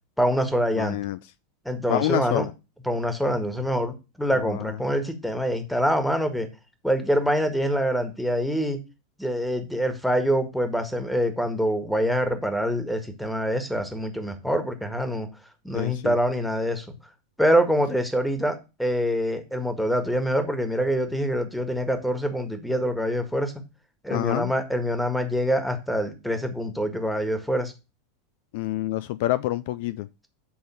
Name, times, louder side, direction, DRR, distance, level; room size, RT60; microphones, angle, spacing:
voice 1, 0.2-1.0 1.6-2.5 2.8-6.5 6.8-8.8 9.2-15.3 15.6-16.9 17.4-23.5 24.0-27.7, equal, ahead, 1.6 m, -25 dB
voice 2, 0.8-1.2 1.9-2.5 4.4-4.7 15.7-16.2 24.1-24.5 28.5-30.1, left 15 dB, 60° left, 0.4 m, -27 dB
8.5 x 3.7 x 6.9 m
figure-of-eight pair, 90°, 0 cm